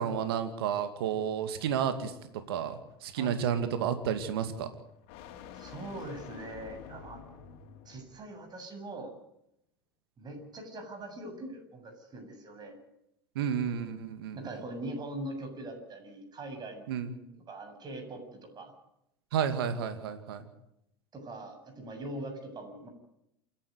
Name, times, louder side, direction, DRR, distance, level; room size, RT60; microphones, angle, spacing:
voice 1, 0.0-2.2 2.5-4.7 13.3-14.4 16.9-17.2 19.3-20.5, right 8 dB, 75° right, 9 dB, 2.4 m, -31 dB
sound 1, 1.2-8.2, left 8 dB, 60° left, 3.4 m, -50 dB
voice 2, 5.5-7.3 7.9-9.1 10.2-12.8 14.3-16.9 17.5-18.7 21.1-22.9, right 1 dB, 35° right, 5 dB, 7.7 m, -42 dB
28.5 x 11.5 x 9.6 m, 0.79 s
hypercardioid pair, 80°, 13 cm